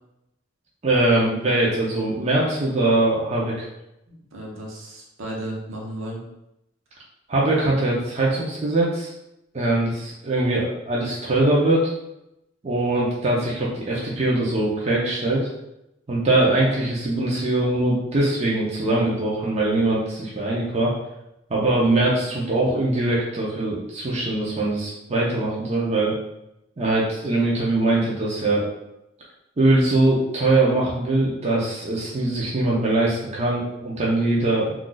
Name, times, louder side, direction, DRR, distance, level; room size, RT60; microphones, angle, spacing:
voice 1, 0.8-3.7 7.3-9.1 9.5-11.9 12.6-15.5 16.1-20.9 21.5-26.1 26.8-28.7 29.6-34.7, right 2 dB, 35° right, -5 dB, 0.5 m, -22 dB
voice 2, 4.1-6.2, right 1 dB, 70° right, -2 dB, 0.8 m, -34 dB
2.4 x 2.3 x 3.8 m, 0.87 s
head